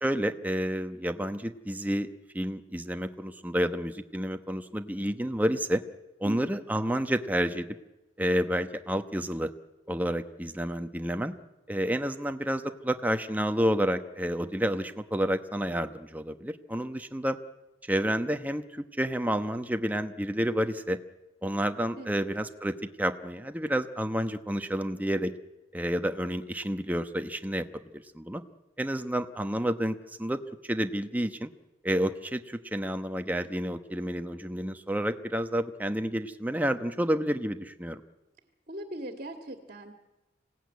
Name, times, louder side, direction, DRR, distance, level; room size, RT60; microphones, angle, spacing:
voice 1, 0.0-2.1 2.3-5.8 6.2-7.7 8.2-9.5 9.9-11.3 11.7-17.4 17.8-21.0 21.4-25.3 25.7-27.7 28.1-28.4 28.8-31.5 31.8-38.0, equal, 10° right, 7 dB, 1.0 m, -30 dB
voice 2, 6.2-6.6 22.0-22.2 38.7-39.9, right 1 dB, 45° right, 6 dB, 2.1 m, -40 dB
26.0 x 17.5 x 9.5 m, 1.0 s
head